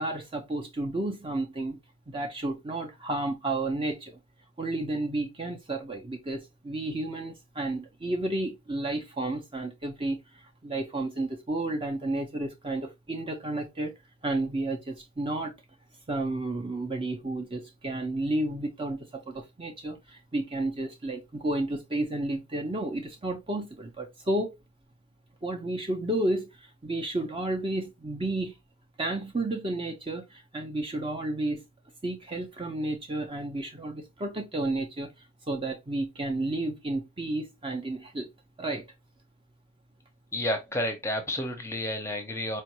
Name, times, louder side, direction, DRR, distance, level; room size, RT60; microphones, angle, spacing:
voice 1, 0.0-1.8 2.1-4.2 4.6-10.2 10.6-13.9 14.2-15.6 16.1-24.6 25.4-28.6 29.0-31.7 32.0-35.1 35.5-38.3 38.6-38.8, right 2 dB, 25° right, 0.6 m, -32 dB
voice 2, 40.3-42.6, left 1 dB, 15° left, 0.7 m, -30 dB
4.4 x 2.5 x 3.0 m
head